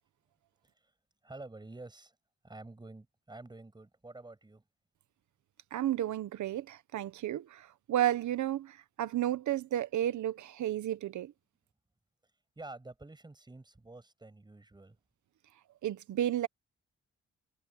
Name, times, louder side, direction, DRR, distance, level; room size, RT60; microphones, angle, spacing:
voice 1, 0.6-0.9 1.2-2.2 2.4-4.6 12.2-15.0, right 2 dB, 15° right, 6.9 m, -49 dB
voice 2, 5.7-11.3 15.8-16.5, right 12 dB, 80° right, 1.1 m, -32 dB
wide cardioid pair, 145°, 29 cm